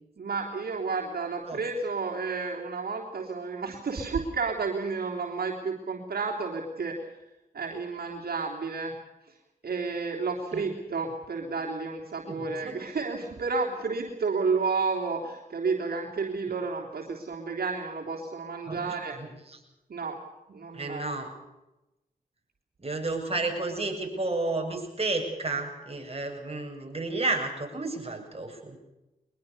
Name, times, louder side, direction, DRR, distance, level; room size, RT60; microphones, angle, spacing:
voice 1, 0.2-6.9 7.5-8.9 9.6-19.2 19.9-20.2 20.5-21.1, right 4 dB, 85° right, -1 dB, 3.5 m, -31 dB
voice 2, 12.3-12.8 18.7-19.6 20.7-21.3 22.8-28.8, right 2 dB, 40° right, 2 dB, 8.0 m, -32 dB
23.5 x 21.0 x 6.8 m, 0.96 s
cardioid pair, 45°, 16 cm